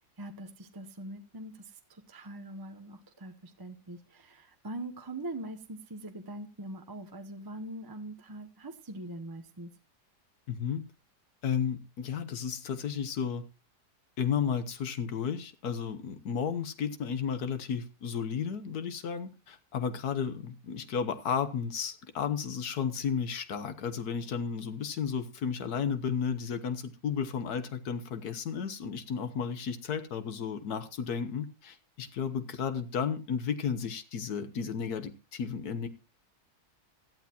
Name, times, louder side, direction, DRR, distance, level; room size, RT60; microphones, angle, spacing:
voice 1, 0.2-9.7, right 1 dB, 20° right, 0.7 m, -42 dB
voice 2, 10.5-10.8 11.4-13.5 14.2-35.9, left 7 dB, 75° left, 1.6 m, -33 dB
17.0 x 12.0 x 2.9 m
omnidirectional pair, 1.7 m